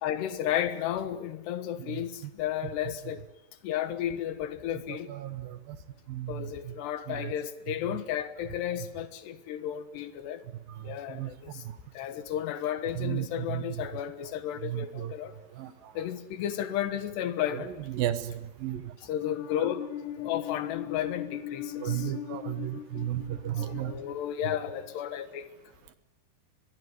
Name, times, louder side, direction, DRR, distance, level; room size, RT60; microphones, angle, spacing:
voice 1, 0.0-3.2 3.6-5.1 6.3-10.4 10.8-11.7 12.0-15.4 16.0-17.7 19.0-25.5, left 11 dB, 80° left, 3.5 m, -33 dB
voice 2, 4.9-5.8 6.1-6.7 7.1-7.3 10.7-11.8 13.0-13.6 14.6-15.1 15.6-16.0 17.9-18.9 21.8-24.0, right 13 dB, 70° right, 2.5 m, -34 dB
23.5 x 22.5 x 9.5 m
omnidirectional pair, 4.8 m